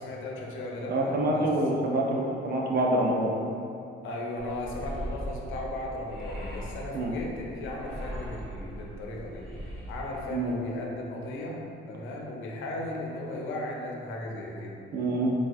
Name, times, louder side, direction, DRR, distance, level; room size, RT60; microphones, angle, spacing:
voice 1, 0.0-1.5 4.0-9.5 9.9-14.8, left 1 dB, 80° left, -2 dB, 0.6 m, -36 dB
voice 2, 0.9-3.3 6.9-7.1 10.3-10.5 14.9-15.3, right 1 dB, 50° right, -1 dB, 0.5 m, -26 dB
sound 1, 4.4-10.3, equal, ahead, 1.0 m, -39 dB
4.1 x 2.3 x 2.4 m, 2.7 s
cardioid pair, 90°, 20 cm